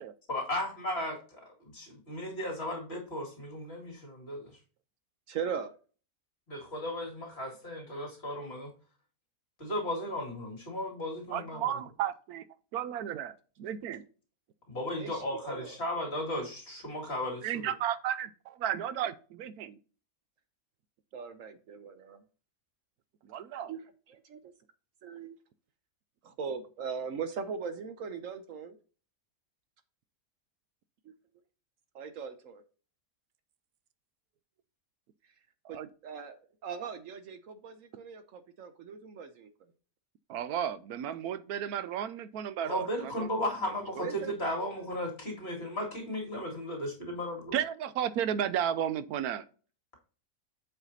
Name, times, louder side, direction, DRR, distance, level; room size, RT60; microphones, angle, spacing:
voice 1, 0.3-4.6 6.5-8.7 9.6-11.7 14.7-17.7 42.6-47.5, left 1 dB, 45° left, 2.5 m, -35 dB
voice 2, 5.3-5.7 15.0-15.8 21.1-22.2 23.7-23.8 24.1-24.5 25.0-25.4 26.2-28.8 31.0-31.1 31.9-32.6 35.7-39.5 44.0-44.3, right 6 dB, 65° right, 1.0 m, -40 dB
voice 3, 11.3-12.4 12.7-14.0 17.4-19.8 23.3-23.7 35.6-35.9 40.3-43.3 44.0-44.1 47.5-49.5, right 9 dB, 90° right, 1.1 m, -33 dB
7.7 x 4.9 x 4.0 m
omnidirectional pair, 1.6 m